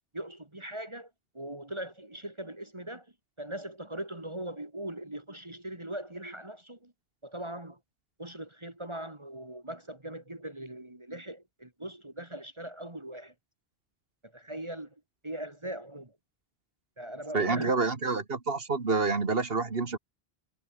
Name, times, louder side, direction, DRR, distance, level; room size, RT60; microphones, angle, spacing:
voice 1, 0.1-3.1 3.4-6.9 7.2-7.8 8.2-13.3 14.2-15.0 15.2-16.2 17.0-17.8, right 1 dB, 25° right, 2.3 m, -40 dB
voice 2, 17.3-20.0, right 4 dB, 65° right, 2.1 m, -28 dB
omnidirectional pair, 1.1 m